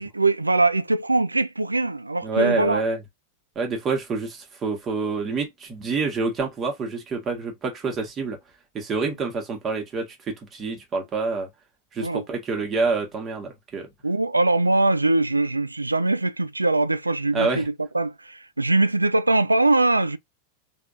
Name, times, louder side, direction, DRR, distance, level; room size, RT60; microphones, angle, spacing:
voice 1, 0.0-2.8 12.0-12.2 14.0-20.2, right 2 dB, 85° right, 0.3 m, -22 dB
voice 2, 2.2-3.0 3.5-8.4 8.7-11.5 11.9-13.9 17.3-17.6, right 4 dB, 25° right, 1.4 m, -27 dB
3.7 x 3.6 x 2.5 m
figure-of-eight pair, 90°, 0 cm